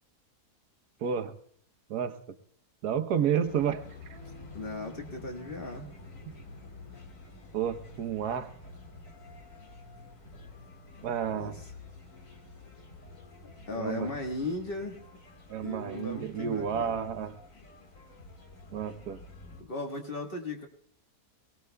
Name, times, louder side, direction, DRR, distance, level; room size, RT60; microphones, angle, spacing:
voice 1, 1.0-1.3 1.9-2.1 2.8-3.8 7.5-8.5 11.0-11.6 13.7-14.1 15.5-17.3 18.7-19.2, right 8 dB, 85° right, 10 dB, 1.4 m, -30 dB
sound 1, 3.4-19.6, left 2 dB, 60° left, 2.1 m, -49 dB
voice 2, 4.5-5.9 11.3-11.7 13.7-15.0 15.6-17.0 19.6-20.7, left 2 dB, 40° left, 2 dB, 1.6 m, -37 dB
21.5 x 18.0 x 2.2 m, 0.63 s
omnidirectional pair, 1.6 m